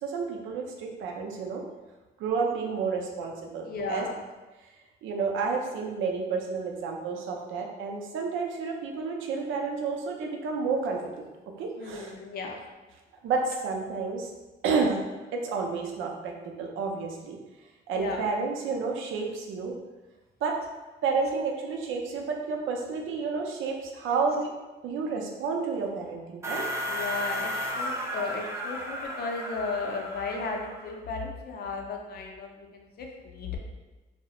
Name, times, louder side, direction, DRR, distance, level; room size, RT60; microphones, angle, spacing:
voice 1, 0.0-1.6 2.2-4.1 5.0-11.3 11.6-12.1 13.2-14.3 14.6-15.0 15.3-16.3 16.6-17.4 17.9-19.7 20.4-20.5 21.0-24.5 24.8-26.7, right 4 dB, 85° right, 1 dB, 0.4 m, -30 dB
voice 2, 3.7-4.2 11.8-12.6 17.9-18.2 26.9-33.6, left 4 dB, 50° left, 2 dB, 0.5 m, -35 dB
sound 1, 26.4-30.9, equal, 15° right, 0.3 m, -34 dB
2.3 x 2.0 x 2.8 m, 1.1 s
cardioid pair, 90°, 20 cm